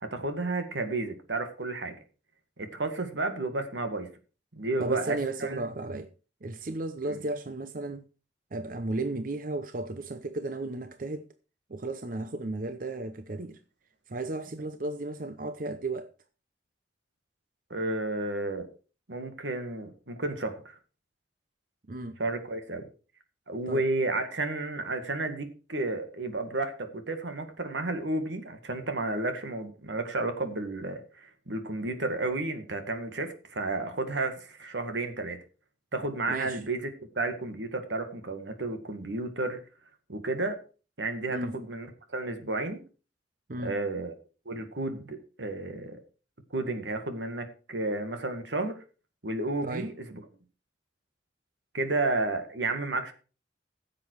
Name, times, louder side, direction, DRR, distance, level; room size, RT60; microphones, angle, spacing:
voice 1, 0.0-1.9 2.6-4.1 4.5-5.6 17.7-18.7 19.1-20.8 22.2-22.9 23.5-35.4 35.9-36.9 37.2-39.6 40.1-40.6 41.0-42.8 43.6-44.1 44.5-46.0 46.5-48.8 49.2-50.2 51.7-53.1, right 2 dB, 85° right, 2.0 m, -32 dB
voice 2, 4.8-6.1 6.4-8.1 8.5-11.3 11.7-13.6 14.1-16.1 21.9-22.2 23.7-23.8 36.3-36.6 41.3-41.6 43.5-43.7 49.6-49.9, right 2 dB, 50° right, 0.8 m, -34 dB
15.0 x 7.6 x 4.7 m
head